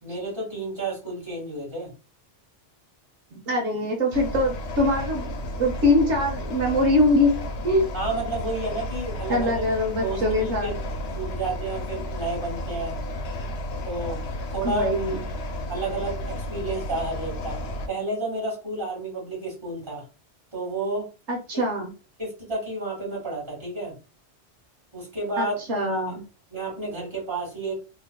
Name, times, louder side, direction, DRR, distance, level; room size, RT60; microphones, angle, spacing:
voice 1, 0.0-1.9 7.9-9.5 10.0-10.8 11.2-13.0 13.8-14.2 14.5-14.9 15.7-17.6 17.9-20.0 20.5-21.1 22.2-23.9 24.9-26.1 26.5-27.8, right 2 dB, 25° right, -4 dB, 2.1 m, -31 dB
voice 2, 3.3-5.3 5.6-7.9 9.3-10.7 14.6-15.2 21.3-21.9 25.4-26.2, left 1 dB, 85° right, 2 dB, 1.2 m, -23 dB
sound 1, 4.1-17.9, left 1 dB, 70° left, 0.9 m, -32 dB
3.6 x 3.0 x 2.3 m, 0.30 s
omnidirectional pair, 1.2 m